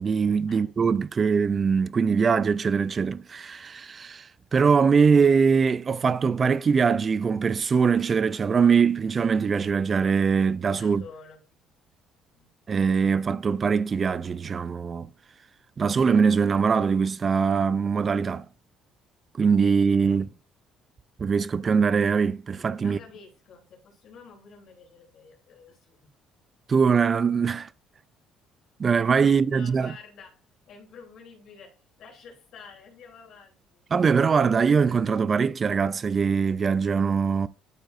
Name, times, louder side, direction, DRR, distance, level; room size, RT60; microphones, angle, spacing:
voice 1, 0.0-11.0 12.7-15.1 15.8-18.5 19.3-20.3 21.2-23.0 26.7-27.7 28.8-29.9 33.9-37.5, right 5 dB, 35° right, 0.3 m, -22 dB
voice 2, 10.8-11.4 12.3-12.5 20.0-20.2 22.8-26.1 29.2-30.3 30.7-33.8, left 5 dB, 65° left, 3.1 m, -49 dB
12.0 x 5.3 x 2.5 m
cardioid pair, 90°, 0 cm